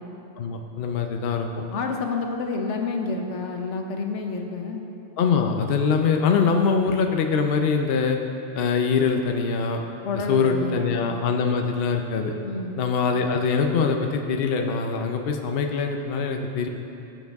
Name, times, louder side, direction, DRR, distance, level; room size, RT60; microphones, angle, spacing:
voice 1, 0.4-1.5 5.2-8.2 8.5-9.8 10.3-12.3 12.8-16.7, left 5 dB, 60° left, 4 dB, 0.8 m, -23 dB
voice 2, 1.7-4.8 10.0-11.0 12.4-12.8, left 4 dB, 85° left, 3 dB, 1.2 m, -29 dB
16.0 x 7.3 x 3.5 m, 2.8 s
omnidirectional pair, 1.2 m